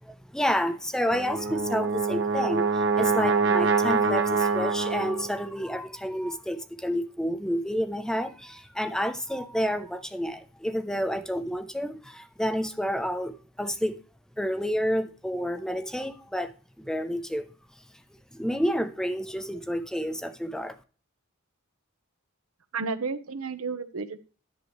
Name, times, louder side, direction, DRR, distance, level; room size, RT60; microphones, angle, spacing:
voice 1, 0.0-14.0 14.4-16.5 16.8-17.5 18.3-20.8, equal, 5° left, 0.5 m, -30 dB
Brass instrument, 1.1-5.4, right 4 dB, 60° right, 1.0 m, -25 dB
voice 2, 22.7-24.2, right 4 dB, 90° right, 0.9 m, -32 dB
11.0 x 7.5 x 3.1 m
head